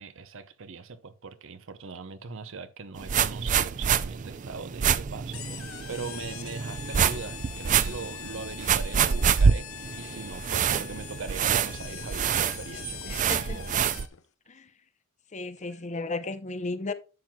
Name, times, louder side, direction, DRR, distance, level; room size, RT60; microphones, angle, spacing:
voice 1, 0.0-13.8, right 4 dB, 65° right, 0.7 m, -40 dB
sound 1, 3.0-14.1, right 7 dB, 40° right, 0.4 m, -27 dB
sound 2, 5.3-14.2, left 11 dB, 70° left, 0.6 m, -43 dB
voice 2, 13.1-13.6 14.5-14.7 15.3-16.9, left 3 dB, 35° left, 0.7 m, -34 dB
10.5 x 7.6 x 2.3 m
head